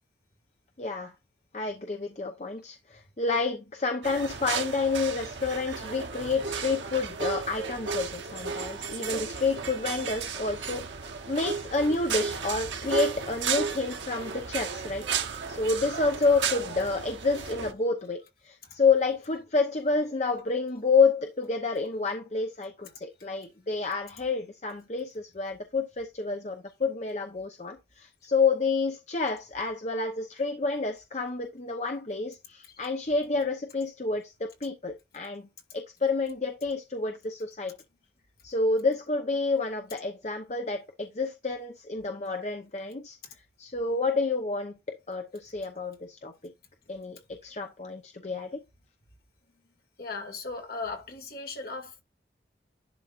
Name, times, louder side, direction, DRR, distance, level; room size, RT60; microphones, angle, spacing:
voice 1, 0.8-1.1 1.5-35.5 35.7-37.7 38.4-43.2 43.6-46.5 46.9-48.6, left 4 dB, 40° left, 0.8 m, -29 dB
sound 1, 4.0-17.7, right 6 dB, 90° right, 0.9 m, -34 dB
voice 2, 50.0-52.0, left 3 dB, 55° left, 2.2 m, -37 dB
11.0 x 4.4 x 2.5 m
head